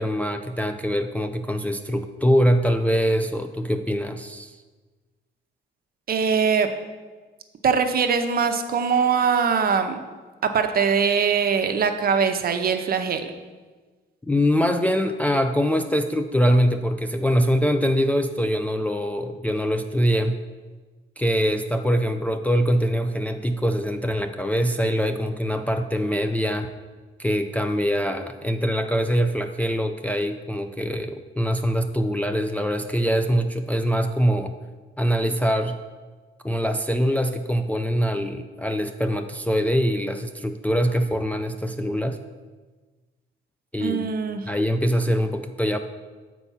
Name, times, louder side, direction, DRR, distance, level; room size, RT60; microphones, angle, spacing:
voice 1, 0.0-4.6 14.2-20.4 21.2-26.7 27.2-34.5 35.0-35.8 36.4-42.2 43.7-44.1 44.5-45.8, equal, 5° left, 5 dB, 0.4 m, -23 dB
voice 2, 6.1-6.7 7.6-10.0 10.4-13.3 43.8-44.4, right 6 dB, 50° right, 7 dB, 0.7 m, -22 dB
6.9 x 4.6 x 5.5 m, 1.3 s
cardioid pair, 90°, 20 cm